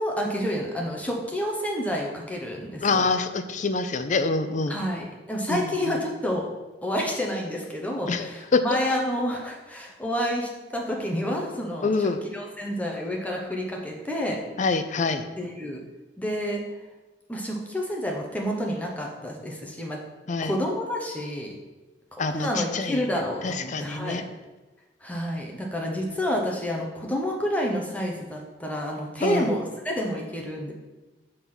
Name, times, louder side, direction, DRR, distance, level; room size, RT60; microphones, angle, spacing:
voice 1, 0.0-3.1 4.7-6.5 6.8-14.4 15.4-15.8 16.2-16.6 17.3-20.0 20.4-21.5 22.2-24.2 25.0-30.7, equal, 10° left, 0 dB, 0.9 m, -29 dB
voice 2, 2.8-4.9 5.5-6.0 8.1-8.6 11.8-12.2 14.6-15.3 20.3-20.5 22.2-23.1 23.4-24.2 29.2-29.5, left 3 dB, 45° left, 10 dB, 0.5 m, -26 dB
6.9 x 3.8 x 6.1 m, 1.1 s
head